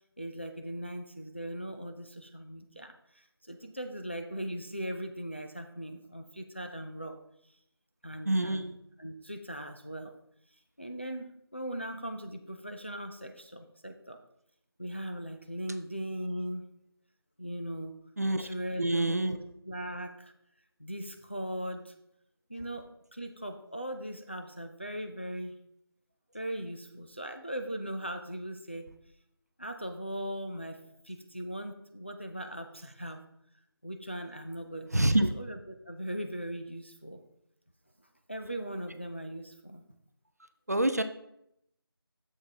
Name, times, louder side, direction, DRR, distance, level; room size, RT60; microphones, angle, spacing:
voice 1, 0.2-7.2 8.0-8.7 9.0-10.1 10.8-14.2 14.8-16.7 17.4-17.9 18.4-20.3 20.8-21.9 22.5-25.6 26.3-28.9 29.6-33.2 33.8-35.1 35.3-37.2 38.3-39.8, equal, 30° left, 6 dB, 0.4 m, -39 dB
voice 2, 8.3-8.7 18.2-18.5 18.8-19.4 34.9-35.3 40.7-41.0, right 1 dB, 40° right, 9 dB, 0.4 m, -26 dB
7.0 x 5.6 x 3.9 m, 0.78 s
figure-of-eight pair, 170°, 13 cm